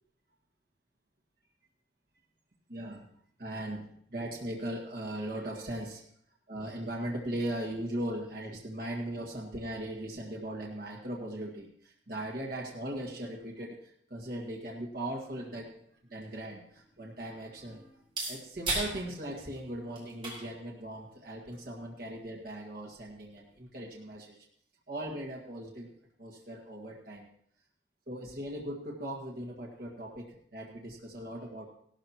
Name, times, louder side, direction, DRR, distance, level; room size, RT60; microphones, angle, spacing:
voice 1, 2.7-3.1 3.4-6.0 6.5-15.7 16.1-18.0 18.3-24.5 24.9-25.9 26.2-27.3 28.1-31.6, right 1 dB, 55° right, -2 dB, 1.8 m, -39 dB
sound 1, 16.0-23.6, right 2 dB, 30° right, 3.9 m, -42 dB
16.5 x 13.0 x 3.0 m, 0.66 s
head